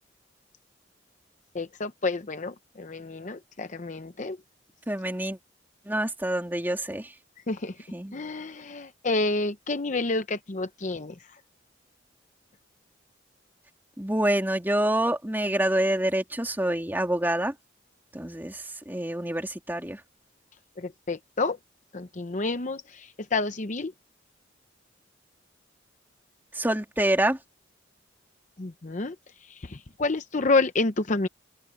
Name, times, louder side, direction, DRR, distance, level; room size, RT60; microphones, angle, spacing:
voice 1, 1.5-4.4 7.5-7.7 8.1-11.1 20.8-21.6 21.9-23.9 28.6-29.2 29.5-31.3, left 3 dB, 40° left, 0.8 m, -29 dB
voice 2, 4.9-5.4 5.8-7.1 7.9-8.2 14.0-17.5 18.1-20.0 26.5-27.4, right 1 dB, 10° right, 3.1 m, -27 dB
open air
head